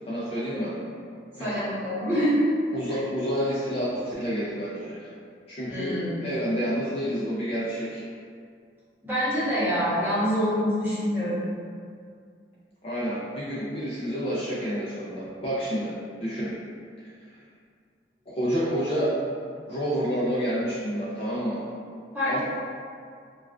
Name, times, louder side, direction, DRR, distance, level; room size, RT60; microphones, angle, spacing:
voice 1, 0.1-0.7 1.3-1.6 2.7-5.1 5.5-8.0 12.8-15.9 16.2-16.5 17.0-17.1 18.3-19.2 19.7-21.6 22.3-22.4, equal, 35° left, -9 dB, 0.4 m, -29 dB
voice 2, 1.4-2.5 2.9-3.0 5.7-6.1 9.0-11.4 22.1-22.4, equal, 10° right, -13 dB, 0.9 m, -25 dB
2.3 x 2.3 x 2.3 m, 2.2 s
head